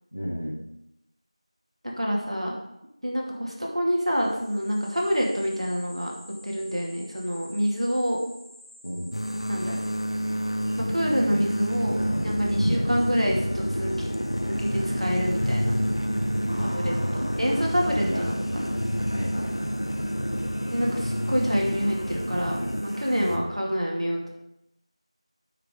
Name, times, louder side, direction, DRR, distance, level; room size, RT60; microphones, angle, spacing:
voice 1, 0.1-0.6 8.8-9.1 12.5-12.8 16.4-18.7 19.1-20.3 23.2-23.6, equal, 30° left, -2 dB, 1.5 m, -34 dB
voice 2, 2.0-2.5 3.0-6.1 6.4-8.2 9.5-9.8 10.9-14.1 14.4-15.7 16.6-18.7 20.7-24.3, equal, 70° right, -2 dB, 2.5 m, -27 dB
sound 1, 4.0-10.5, equal, 30° right, 2.4 m, -50 dB
sound 2, 9.1-23.4, equal, 55° left, 1.1 m, -30 dB
sound 3, 11.9-22.8, equal, 85° left, 0.9 m, -31 dB
9.9 x 6.6 x 3.8 m, 0.85 s
figure-of-eight pair, 180°, 3 cm